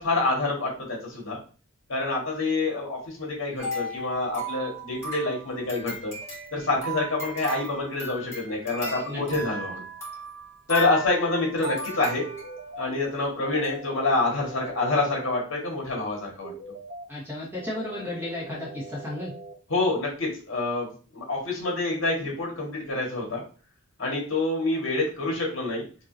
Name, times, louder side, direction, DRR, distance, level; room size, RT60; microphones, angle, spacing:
voice 1, 0.0-1.4 1.9-6.1 6.5-9.8 10.7-12.2 12.8-16.5 19.7-23.4 24.0-25.8, left 2 dB, 65° left, -2 dB, 1.8 m, -27 dB
sound 1, 3.6-12.7 13.2-13.3 13.6-13.8, right 1 dB, 10° left, 1.8 m, -37 dB
sound 2, 12.3-12.9 13.4-15.4 16.4-17.0 17.5-19.5, right 1 dB, 55° right, 1.0 m, -41 dB
voice 2, 17.1-19.3, left 1 dB, 10° right, -4 dB, 1.4 m, -33 dB
5.2 x 2.9 x 2.8 m, 0.38 s
head